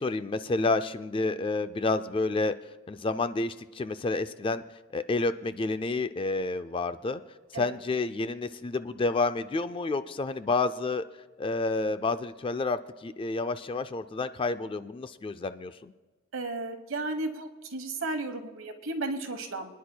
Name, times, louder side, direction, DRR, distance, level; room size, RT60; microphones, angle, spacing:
voice 1, 0.0-2.5 2.9-4.6 4.9-7.2 7.5-11.0 11.4-15.9, left 3 dB, 25° left, 12 dB, 0.3 m, -29 dB
voice 2, 16.3-19.7, right 2 dB, 65° right, 7 dB, 1.1 m, -34 dB
25.5 x 10.0 x 2.2 m, 1.3 s
head